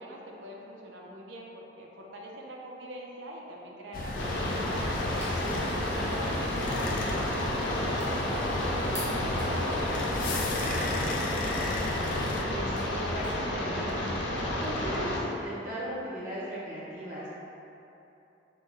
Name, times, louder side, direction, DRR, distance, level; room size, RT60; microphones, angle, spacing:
voice 1, 0.0-4.9 5.9-11.7, equal, 90° right, -2 dB, 0.6 m, -43 dB
sound 1, 3.9-12.4, left 2 dB, 45° left, 0.4 m, -34 dB
sound 2, 4.1-15.2, left 1 dB, 85° left, 0.7 m, -31 dB
sound 3, 4.4-13.4, equal, 15° right, 1.0 m, -50 dB
voice 2, 5.3-5.6 12.4-14.2 14.6-17.3, equal, 45° right, -10 dB, 1.3 m, -37 dB
3.9 x 3.3 x 3.8 m, 2.9 s
head